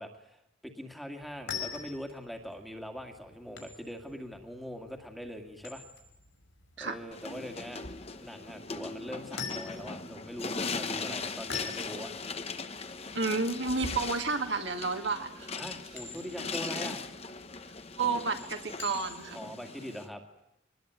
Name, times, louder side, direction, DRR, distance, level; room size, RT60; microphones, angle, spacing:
voice 1, 0.0-5.8 6.8-7.8 8.2-12.1 15.6-17.0 19.3-20.2, equal, ahead, 5 dB, 2.0 m, -42 dB
sound 1, 1.2-19.4, left 5 dB, 70° left, 5.9 m, -45 dB
sound 2, 7.1-20.1, left 4 dB, 30° left, 1.2 m, -39 dB
voice 2, 13.1-15.6 18.0-19.4, right 4 dB, 60° right, 5 dB, 2.1 m, -31 dB
23.5 x 20.0 x 9.3 m, 0.85 s
head